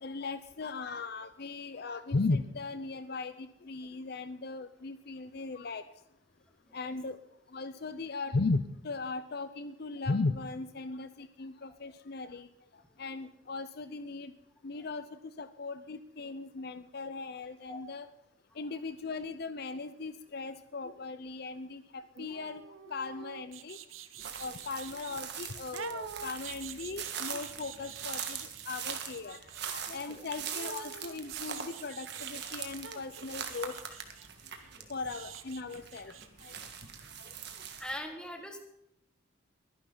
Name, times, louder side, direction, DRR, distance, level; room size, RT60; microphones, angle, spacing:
voice 1, 0.0-5.8 6.7-7.2 7.5-12.5 13.0-14.3 14.6-18.1 18.6-22.6 22.9-23.8 24.4-28.4 28.7-29.4 29.7-33.7 34.9-36.1 36.4-36.6, left 3 dB, 50° left, 12 dB, 0.6 m, -37 dB
sound 1, 22.2-25.2 25.7-29.7 30.5-32.6 32.8-36.6 36.9-37.0, right 7 dB, 80° right, 0.9 m, -47 dB
sound 2, 24.2-38.0, right 7 dB, 55° right, 1.7 m, -42 dB
voice 2, 37.8-38.6, left 1 dB, 5° left, 4 dB, 1.7 m, -41 dB
22.5 x 10.5 x 3.9 m, 0.81 s
head